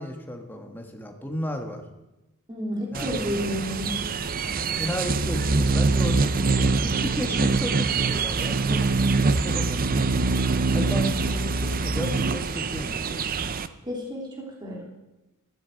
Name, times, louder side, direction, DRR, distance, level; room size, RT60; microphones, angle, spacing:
voice 1, 0.0-1.8 2.9-3.3 4.5-10.1 10.7-13.2, left 1 dB, 10° left, 3 dB, 1.8 m, -34 dB
voice 2, 2.5-3.9 13.8-14.8, equal, 20° right, -2 dB, 3.4 m, -31 dB
sound 1, 2.9-13.7, right 4 dB, 40° right, 0.7 m, -24 dB
17.0 x 14.0 x 4.8 m, 1.0 s
head